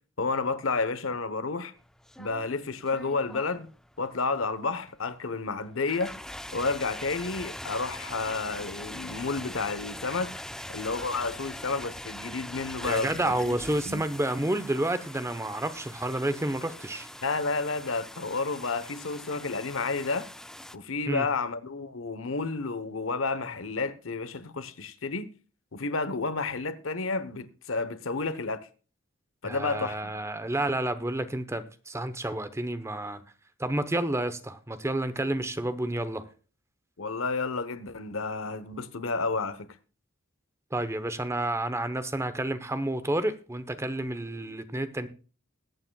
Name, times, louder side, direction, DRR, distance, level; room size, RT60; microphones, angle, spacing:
voice 1, 0.2-1.7 2.2-3.7 4.0-6.1 6.5-10.3 10.7-13.6 13.9-14.0 17.2-20.3 20.7-25.3 25.7-28.7 29.4-30.1 37.0-39.7, left 3 dB, 75° left, 1.0 m, -31 dB
sound 1, 1.8-20.8, left 1 dB, 5° left, 0.4 m, -43 dB
voice 2, 12.8-17.1 21.1-21.2 29.4-33.2 33.6-36.3 40.7-45.1, right 1 dB, 15° right, 0.9 m, -30 dB
21.0 x 8.8 x 2.3 m
head